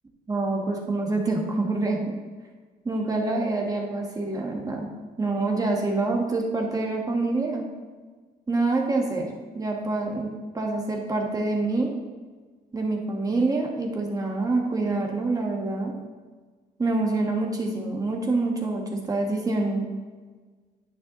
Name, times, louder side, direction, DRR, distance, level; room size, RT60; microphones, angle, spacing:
voice 1, 0.3-2.0 2.8-4.9 5.2-7.6 8.5-9.3 9.5-10.3 10.5-11.9 12.7-15.9 16.8-19.9, right 2 dB, 20° right, 0 dB, 1.3 m, -26 dB
9.5 x 8.7 x 3.0 m, 1.4 s
cardioid pair, 110°, 17 cm